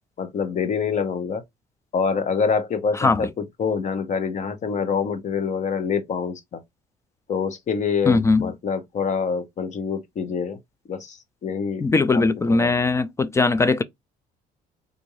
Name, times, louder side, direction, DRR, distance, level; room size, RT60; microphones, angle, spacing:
voice 1, 0.2-1.4 1.9-6.6 7.3-10.6 10.9-11.9 12.1-12.2 12.5-12.7, left 6 dB, 45° left, 0.9 m, -26 dB
voice 2, 3.0-3.3 8.1-8.5 11.8-13.8, left 3 dB, 15° left, 0.3 m, -20 dB
3.6 x 2.6 x 3.0 m
cardioid pair, 110°, 17 cm